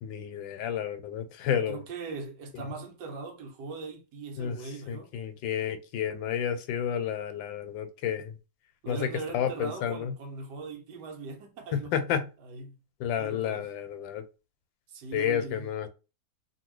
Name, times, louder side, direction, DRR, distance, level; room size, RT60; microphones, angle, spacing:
voice 1, 0.0-1.8 2.5-2.6 4.4-4.6 4.9-8.3 8.9-10.1 11.7-12.3 13.0-14.2 15.1-15.9, left 9 dB, 85° left, 1.3 m, -31 dB
voice 2, 1.5-5.1 8.8-11.9 12.4-12.8 13.2-13.7 14.9-15.7, right 4 dB, 70° right, 1.2 m, -40 dB
2.9 x 2.6 x 3.0 m
omnidirectional pair, 2.0 m